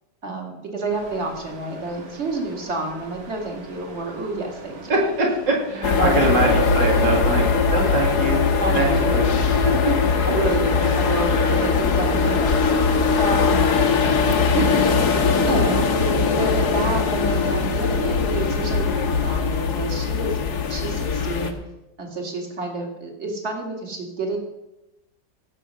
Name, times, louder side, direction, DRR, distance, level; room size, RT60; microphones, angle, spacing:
voice 1, 0.2-4.9 6.0-6.4 8.6-9.2 9.9-10.0 10.3-12.7 13.1-13.7 14.5-15.8 16.3-21.5 22.0-24.4, right 2 dB, 40° right, 2 dB, 2.3 m, -29 dB
sound 1, 0.9-16.9, right 2 dB, 55° right, 2.0 m, -42 dB
voice 2, 4.9-8.4 8.7-9.4 11.3-11.7 13.8-14.2, right 2 dB, 75° right, -1 dB, 3.1 m, -24 dB
sound 2, 5.8-21.5, left 5 dB, 65° left, 1.6 m, -20 dB
16.0 x 6.7 x 5.5 m, 0.94 s
omnidirectional pair, 1.9 m